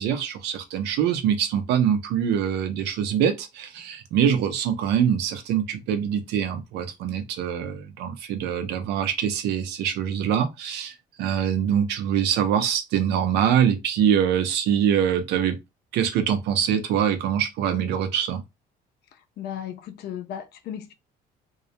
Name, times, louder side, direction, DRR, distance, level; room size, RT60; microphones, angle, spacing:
voice 1, 0.0-10.9 11.2-15.6 15.9-18.4, right 9 dB, 85° right, 0.5 m, -24 dB
voice 2, 19.4-20.9, left 9 dB, 70° left, 0.5 m, -35 dB
2.3 x 2.0 x 2.7 m
cardioid pair, 110°, 17 cm